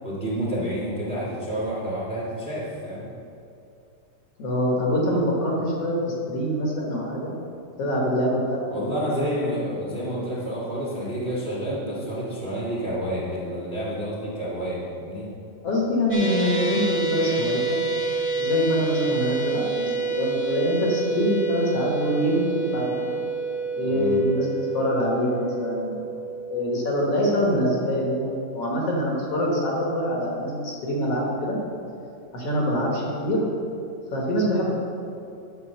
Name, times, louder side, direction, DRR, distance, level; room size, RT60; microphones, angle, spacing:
voice 1, 0.0-3.1 8.7-15.3 23.8-24.2, equal, 30° right, -6 dB, 1.3 m, -29 dB
voice 2, 4.4-5.9 6.3-7.4 7.8-8.8 15.6-17.8 18.4-23.2 23.8-24.5 24.7-26.0 26.5-31.6 32.3-33.4 34.1-34.6, equal, 55° left, -3 dB, 2.3 m, -24 dB
sound 1, 16.1-28.4, right 4 dB, 5° left, 1.1 m, -29 dB
11.0 x 5.6 x 6.6 m, 2.6 s
omnidirectional pair, 3.6 m